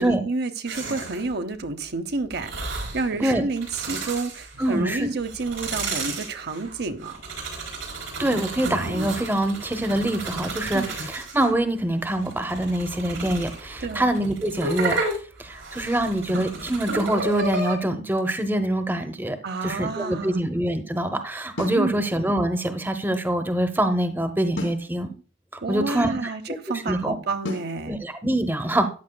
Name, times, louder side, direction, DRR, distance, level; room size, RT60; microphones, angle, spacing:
voice 1, 0.0-7.2 10.7-10.9 13.8-14.1 19.4-20.4 21.8-22.0 25.6-28.0, right 3 dB, 55° right, 8 dB, 0.9 m, -29 dB
sound 1, 0.7-1.3 2.3-3.1 3.5-4.8 5.2-11.5 12.0-17.7, right 2 dB, 90° right, 4.7 m, -32 dB
voice 2, 4.6-5.1 8.2-15.0 15.4-25.1 25.7-26.6 26.9-27.2 27.9-28.9, right 1 dB, 10° right, 8 dB, 0.8 m, -25 dB
sound 2, 21.6-21.9 24.6-24.9 27.4-27.7, equal, 80° left, 3.6 m, -32 dB
13.5 x 9.6 x 2.3 m, 0.38 s
head